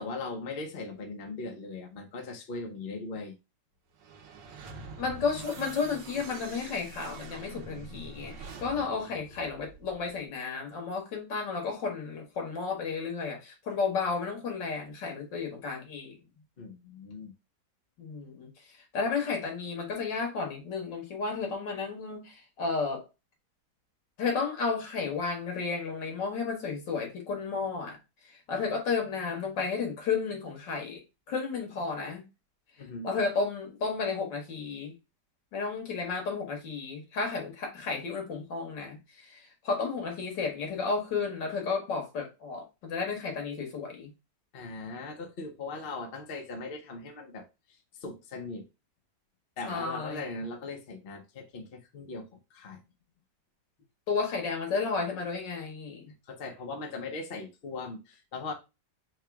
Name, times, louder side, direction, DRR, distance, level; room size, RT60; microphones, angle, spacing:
voice 1, 0.0-3.3 16.6-17.3 32.8-33.1 44.5-48.7 49.6-52.8 56.3-58.5, left 3 dB, 40° left, 0.9 m, -39 dB
sound 1, 3.9-10.2, right 3 dB, 90° right, 1.6 m, -45 dB
voice 2, 5.0-16.2 18.0-18.5 18.9-23.1 24.2-28.0 28.3-32.2 33.0-34.9 35.5-44.1 49.6-50.3 54.1-56.1, left 4 dB, 80° left, 2.2 m, -32 dB
4.8 x 2.3 x 4.6 m
omnidirectional pair, 1.9 m